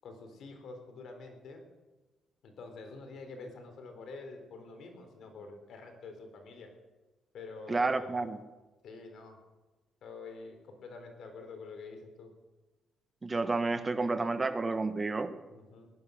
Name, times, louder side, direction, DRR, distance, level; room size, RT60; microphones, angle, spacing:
voice 1, 0.0-1.6 2.4-6.7 7.3-8.3 8.8-9.4 10.0-12.3 15.5-15.9, left 3 dB, 65° left, 5 dB, 3.8 m, -47 dB
voice 2, 7.7-8.4 13.2-15.3, right 3 dB, 25° right, 10 dB, 1.4 m, -30 dB
18.0 x 11.0 x 6.4 m, 1.1 s
cardioid pair, 90°, 0 cm